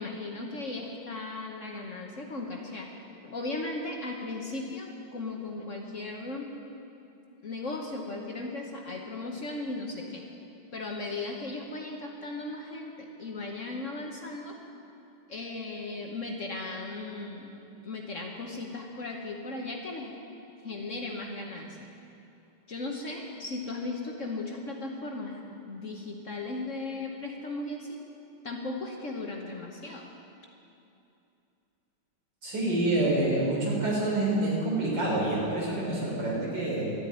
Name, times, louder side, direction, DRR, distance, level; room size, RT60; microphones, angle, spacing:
voice 1, 0.0-2.9 3.2-6.5 7.4-10.2 10.7-14.6 15.3-17.6 17.8-20.1 20.6-21.7 22.7-25.4 25.7-28.0 28.4-30.1, left 2 dB, 45° left, 1 dB, 1.1 m, -36 dB
voice 2, 32.4-36.9, right 2 dB, 55° right, -4 dB, 4.2 m, -27 dB
13.0 x 8.9 x 9.2 m, 2.7 s
omnidirectional pair, 2.3 m